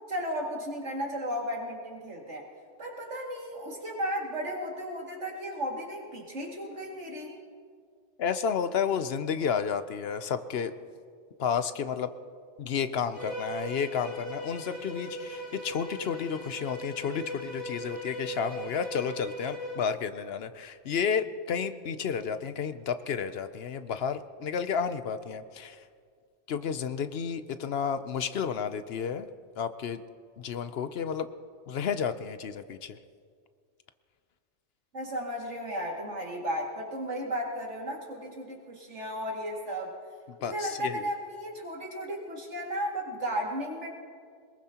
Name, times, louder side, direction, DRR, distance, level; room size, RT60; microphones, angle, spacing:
voice 1, 0.1-2.5 2.8-7.3 34.9-39.9 40.4-43.9, equal, 80° right, -1 dB, 2.6 m, -34 dB
voice 2, 8.2-10.7 11.4-12.1 12.6-25.8 26.5-29.3 29.6-30.0 30.4-31.3 31.7-33.0 40.3-41.0, left 7 dB, 65° left, 11 dB, 0.8 m, -31 dB
Bowed string instrument, 13.1-19.9, equal, 5° right, 5.4 m, -39 dB
22.5 x 21.0 x 2.9 m, 2.1 s
omnidirectional pair, 1.2 m